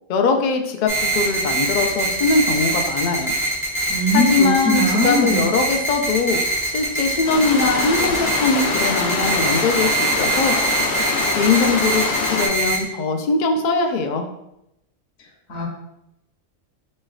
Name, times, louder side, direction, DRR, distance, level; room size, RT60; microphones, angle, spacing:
voice 1, 0.1-3.3 4.1-10.6 11.4-14.2, left 4 dB, 75° left, 4 dB, 0.4 m, -21 dB
sound 1, 0.9-12.8, right 2 dB, 10° right, 0.9 m, -23 dB
voice 2, 3.9-5.5 15.5-15.6, equal, 55° left, -3 dB, 1.1 m, -20 dB
sound 2, 7.2-12.5, left 4 dB, 90° left, 1.0 m, -24 dB
5.1 x 3.1 x 2.3 m, 0.84 s
omnidirectional pair, 1.3 m